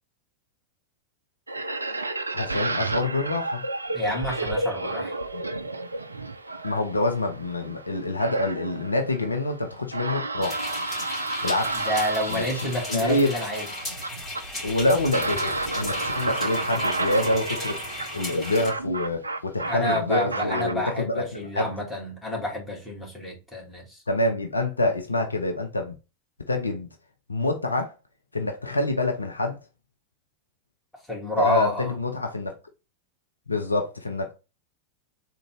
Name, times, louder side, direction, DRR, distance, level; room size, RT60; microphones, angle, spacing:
sound 1, 1.5-20.7, right 2 dB, 80° right, 0.4 m, -31 dB
voice 1, 2.3-3.6 5.3-5.4 6.6-10.6 11.4-11.9 12.3-13.3 14.6-17.8 18.1-21.7 24.1-25.9 26.5-26.9 27.3-27.9 28.3-29.6 31.4-32.5 33.5-34.3, left 2 dB, 80° left, 0.6 m, -26 dB
voice 2, 3.9-5.2 11.7-13.7 19.7-24.0 31.1-31.9, left 1 dB, 5° left, 2.0 m, -29 dB
sound 2, 10.4-18.7, left 1 dB, 20° left, 2.4 m, -36 dB
3.8 x 2.5 x 4.5 m
figure-of-eight pair, 90°, 0 cm